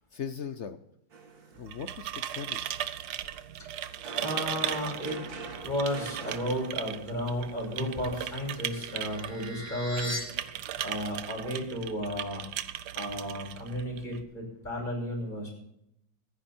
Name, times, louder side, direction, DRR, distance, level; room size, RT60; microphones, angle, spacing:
voice 1, 0.1-0.8 1.5-2.9, left 7 dB, 60° left, 11 dB, 0.7 m, -39 dB
sound 1, 1.1-11.3, right 4 dB, 90° right, 2.7 m, -46 dB
sound 2, 1.5-14.2, right 11 dB, 65° right, 1.2 m, -38 dB
voice 2, 4.2-5.2 5.6-10.2 10.8-12.4 12.9-15.5, equal, 25° left, -1 dB, 6.2 m, -33 dB
sound 3, 8.0-10.2, left 1 dB, 15° right, 2.4 m, -40 dB
25.0 x 9.9 x 4.4 m, 0.79 s
omnidirectional pair, 2.0 m